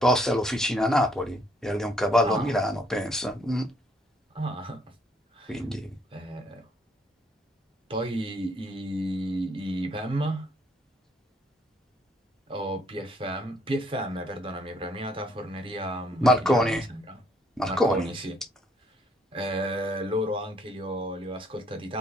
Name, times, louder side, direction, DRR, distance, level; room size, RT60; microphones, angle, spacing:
voice 1, 0.0-3.7 5.5-5.8 16.2-16.8 17.6-18.1, equal, 5° left, 0.5 m, -24 dB
voice 2, 2.2-2.6 4.3-4.8 5.3-5.6 6.1-6.7 7.9-10.5 12.5-17.2 17.6-18.4 19.3-22.0, right 1 dB, 30° right, 0.7 m, -32 dB
2.7 x 2.5 x 4.0 m
head